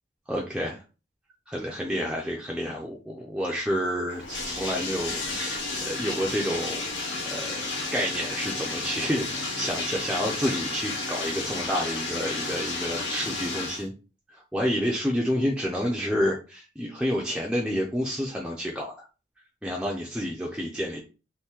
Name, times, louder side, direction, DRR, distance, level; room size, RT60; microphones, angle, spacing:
voice 1, 0.3-0.8 1.5-13.9 14.3-19.1 19.6-21.0, equal, 5° right, -2 dB, 0.5 m, -29 dB
Bathtub (filling or washing), 4.1-13.9, left 3 dB, 85° left, 1.0 m, -32 dB
2.8 x 2.6 x 3.6 m, 0.32 s
head